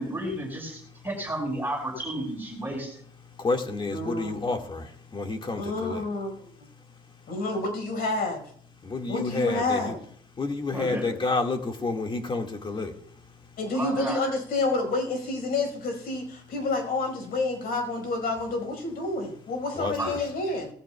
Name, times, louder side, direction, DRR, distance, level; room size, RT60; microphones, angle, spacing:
voice 1, 0.0-3.0 10.7-11.1 13.7-14.2 20.0-20.2, right 1 dB, 10° right, -1 dB, 5.5 m, -32 dB
voice 2, 3.4-6.0 8.8-9.9 10.4-12.9 19.8-20.2, left 3 dB, 30° left, 4 dB, 1.9 m, -29 dB
voice 3, 3.9-4.6 5.6-6.5 7.3-8.4 9.1-10.0 13.6-20.7, left 2 dB, 60° left, 4 dB, 5.0 m, -29 dB
19.0 x 14.5 x 2.3 m, 0.63 s
cardioid pair, 110°, 17 cm